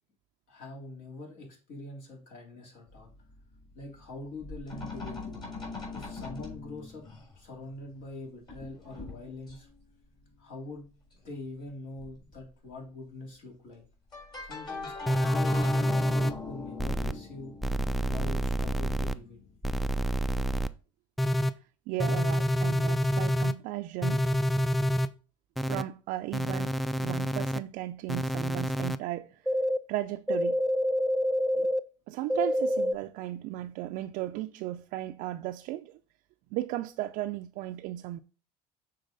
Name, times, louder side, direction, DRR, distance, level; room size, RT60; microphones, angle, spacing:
voice 1, 0.5-3.1 3.7-5.4 5.9-7.0 7.3-9.7 10.4-10.9 11.2-13.8 14.4-17.6 18.1-19.4, left 2 dB, 65° left, 3.5 m, -43 dB
sound 1, 2.9-4.1 4.4-7.4 7.9-8.2 8.5-9.7 11.1-11.2 11.6-11.7 12.0-12.3 14.1-19.6, left 3 dB, 30° left, 3.3 m, -41 dB
sound 2, 15.1-16.3 16.8-17.1 17.6-19.1 19.6-20.7 21.2-21.5 22.0-23.5 24.0-25.1 25.6-25.8 26.3-27.6 28.1-29.0 29.5-29.8 30.3-31.8 32.3-32.9, equal, ahead, 0.3 m, -27 dB
voice 2, 21.9-24.3 25.6-29.5 29.9-30.6 31.6-31.7 32.1-36.0 36.5-38.2, right 15 dB, 65° right, 0.4 m, -36 dB
6.5 x 4.0 x 3.9 m
supercardioid pair, 90°, 15 cm